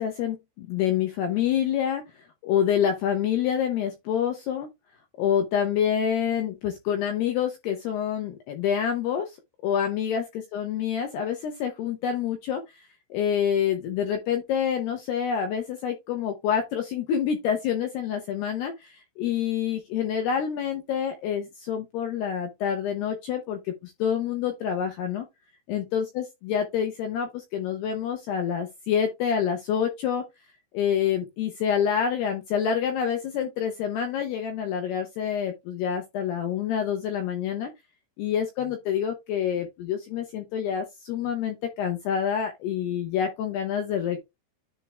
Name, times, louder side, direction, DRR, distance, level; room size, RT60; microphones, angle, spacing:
voice 1, 0.0-2.0 2.4-4.7 5.2-9.4 9.6-25.3 25.7-30.2 30.7-37.7 38.2-44.2, left 8 dB, 75° left, 2.4 m, -27 dB
10.0 x 3.6 x 3.3 m
omnidirectional pair, 5.9 m